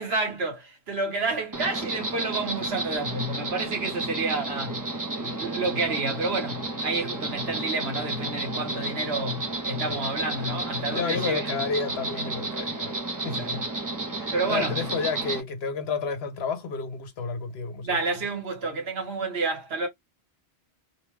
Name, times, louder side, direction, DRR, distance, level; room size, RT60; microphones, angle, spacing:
voice 1, 0.0-4.8 5.2-11.5 13.2-13.6 14.3-14.8 17.8-19.9, right 3 dB, 65° right, 1.2 m, -29 dB
Insect, 1.5-15.4, right 2 dB, 25° right, 0.4 m, -32 dB
voice 2, 10.9-13.6 14.1-18.0, left 5 dB, 70° left, 0.9 m, -31 dB
2.7 x 2.1 x 3.1 m
omnidirectional pair, 1.1 m